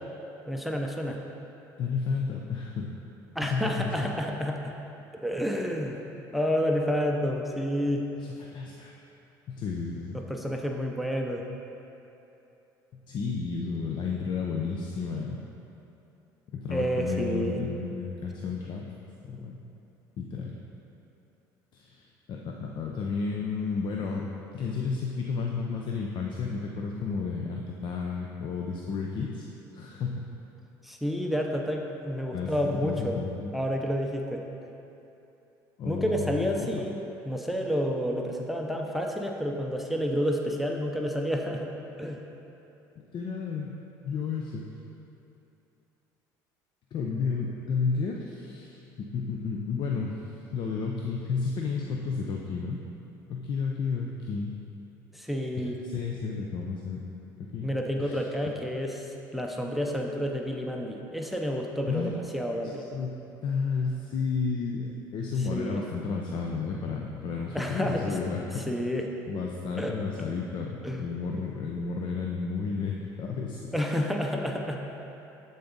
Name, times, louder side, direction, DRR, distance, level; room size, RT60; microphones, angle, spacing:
voice 1, 0.5-1.2 3.4-4.7 5.2-6.0 6.3-8.0 10.1-11.4 16.7-17.6 30.8-33.2 33.5-34.4 35.8-37.0 37.3-41.7 42.0-42.2 55.1-55.8 57.6-62.9 65.4-65.8 67.5-68.2 68.6-69.1 69.8-70.0 70.8-71.0 73.7-74.8, equal, ahead, 1 dB, 0.6 m, -30 dB
voice 2, 1.8-2.9 3.4-4.1 8.2-8.9 9.5-10.2 13.1-15.4 16.5-18.9 19.2-19.6 20.2-20.6 21.7-24.3 24.5-29.5 29.7-30.3 32.3-33.5 35.8-36.8 43.1-43.7 44.0-44.6 46.9-52.8 53.3-54.6 55.6-57.0 57.4-57.7 58.0-58.5 61.9-62.1 62.5-62.6 62.9-63.1 63.4-68.7 69.3-73.7, left 5 dB, 55° left, 0 dB, 0.6 m, -32 dB
11.5 x 4.0 x 4.0 m, 3.0 s
supercardioid pair, 80°, 10 cm